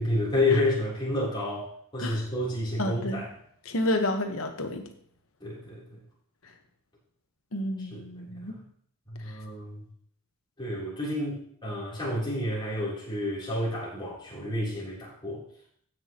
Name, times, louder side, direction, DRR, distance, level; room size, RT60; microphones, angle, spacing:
voice 1, 0.0-1.7 1.9-3.3 5.4-6.0 7.9-8.6 9.1-9.8 10.6-15.4, left 1 dB, 20° left, -6 dB, 3.5 m, -30 dB
voice 2, 2.8-3.2 3.6-4.8 7.5-8.5 9.3-9.4, left 1 dB, 70° left, 6 dB, 1.2 m, -30 dB
16.0 x 6.3 x 3.0 m, 0.64 s
head